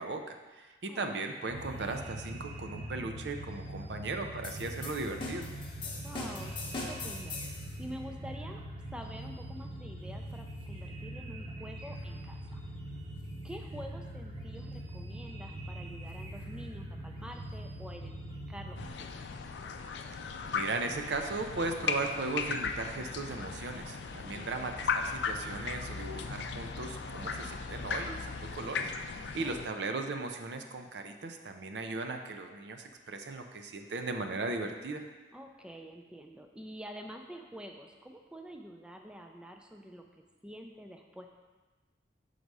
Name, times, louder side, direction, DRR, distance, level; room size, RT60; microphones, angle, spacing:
voice 1, 0.0-5.5 20.5-35.0, right 3 dB, 70° right, 5 dB, 0.5 m, -37 dB
sound 1, 1.5-18.9, right 1 dB, 30° right, 0.8 m, -42 dB
sound 2, 4.4-7.7, left 3 dB, 30° left, 0.8 m, -41 dB
voice 2, 6.0-6.6 6.9-8.6 8.9-12.6 13.4-18.2 18.5-19.1 24.3-24.5 29.4-29.6 35.3-40.0 40.4-41.3, equal, 5° right, 3 dB, 0.4 m, -47 dB
sound 3, 18.8-29.7, left 5 dB, 75° left, 0.4 m, -37 dB
6.4 x 4.0 x 4.7 m, 1.3 s
head